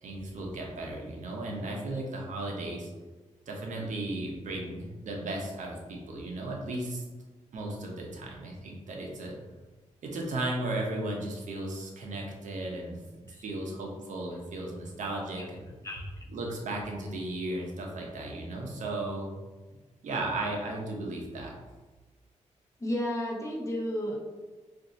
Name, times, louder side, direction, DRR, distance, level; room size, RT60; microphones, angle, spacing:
voice 1, 0.0-2.9 3.5-7.0 7.5-9.3 10.0-15.7 16.3-19.3 20.0-21.5, right 2 dB, 75° right, 0 dB, 0.7 m, -35 dB
voice 2, 15.8-16.2 22.8-24.2, equal, 25° left, -2 dB, 0.8 m, -32 dB
2.6 x 2.5 x 4.0 m, 1.3 s
cardioid pair, 100°, 13 cm